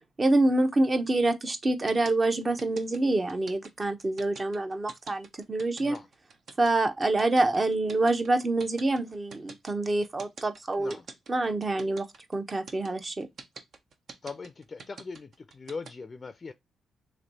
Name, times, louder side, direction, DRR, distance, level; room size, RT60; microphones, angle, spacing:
voice 1, 0.2-6.0 6.6-11.0 11.3-12.1 12.3-13.3, right 2 dB, 35° right, 0.9 m, -26 dB
sound 1, 1.9-15.9, right 4 dB, 65° right, 0.8 m, -46 dB
voice 2, 14.2-16.5, left 4 dB, 40° left, 0.4 m, -40 dB
3.2 x 3.0 x 3.9 m
supercardioid pair, 65°, 0 cm